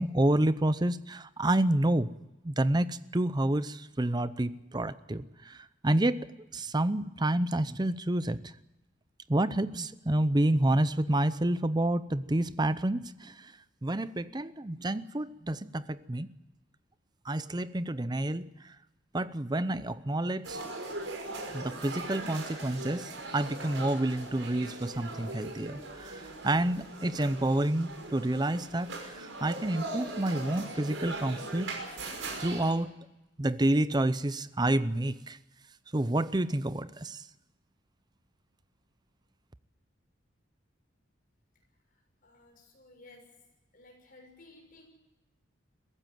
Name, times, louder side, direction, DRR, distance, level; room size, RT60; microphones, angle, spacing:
voice 1, 0.0-2.1 2.4-6.3 6.5-8.4 9.3-13.5 13.8-16.3 17.3-18.5 19.1-20.6 21.5-31.7 32.4-32.9 33.4-35.4 35.9-37.2, right 1 dB, 20° right, 15 dB, 0.7 m, -29 dB
sound 1, 20.4-32.7, right 2 dB, 85° right, 5.6 m, -40 dB
voice 2, 42.2-43.3 43.7-44.9, left 2 dB, 45° left, 2 dB, 6.7 m, -55 dB
22.5 x 15.5 x 9.2 m, 0.99 s
head